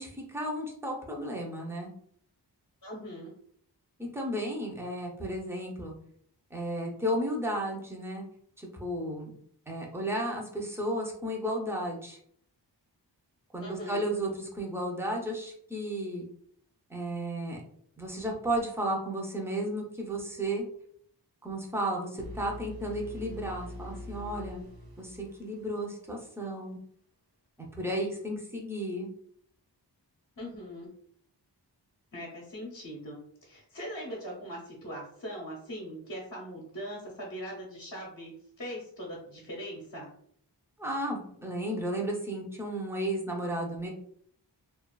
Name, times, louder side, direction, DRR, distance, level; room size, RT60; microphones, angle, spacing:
voice 1, 0.0-1.9 4.0-5.9 6.5-8.2 8.6-9.3 9.7-12.2 13.5-16.2 16.9-17.6 18.0-20.6 21.4-24.6 25.0-26.8 27.6-29.1 40.8-43.9, right 1 dB, 5° right, -1 dB, 0.6 m, -33 dB
voice 2, 2.8-3.3 13.6-14.1 30.4-30.9 32.1-40.1, equal, 55° left, -3 dB, 0.8 m, -41 dB
sound 1, 22.2-26.1, left 1 dB, 55° right, 0.5 m, -44 dB
2.4 x 2.4 x 2.3 m, 0.64 s
wide cardioid pair, 45°, 43 cm